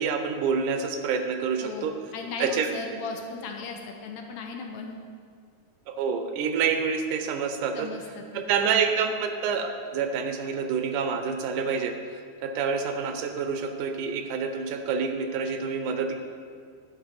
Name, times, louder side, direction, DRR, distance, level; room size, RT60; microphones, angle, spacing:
voice 1, 0.0-2.0 2.4-2.7 5.9-7.9 8.3-12.0 12.4-16.2, right 6 dB, 80° right, 7 dB, 2.0 m, -27 dB
voice 2, 2.1-5.0 7.8-8.7, left 4 dB, 80° left, 3 dB, 1.8 m, -37 dB
9.4 x 3.6 x 5.7 m, 2.2 s
omnidirectional pair, 3.6 m